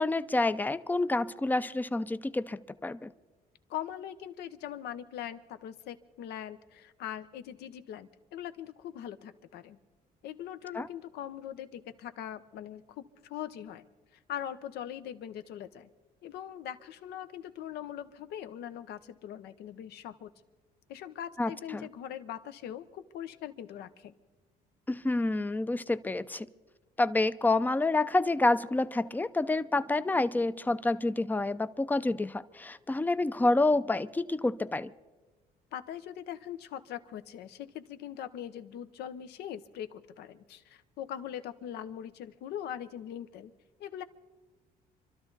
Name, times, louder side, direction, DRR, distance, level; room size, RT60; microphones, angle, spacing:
voice 1, 0.0-3.1 10.7-10.9 21.4-21.9 24.9-26.5 27.0-34.9, left 2 dB, 10° left, 14 dB, 0.5 m, -28 dB
voice 2, 3.7-9.8 10.2-13.8 14.3-15.9 16.2-20.3 20.9-24.1 35.7-43.5 43.8-44.0, left 10 dB, 75° left, 11 dB, 0.9 m, -41 dB
26.5 x 12.5 x 4.0 m, 1.2 s
cardioid pair, 110°, 17 cm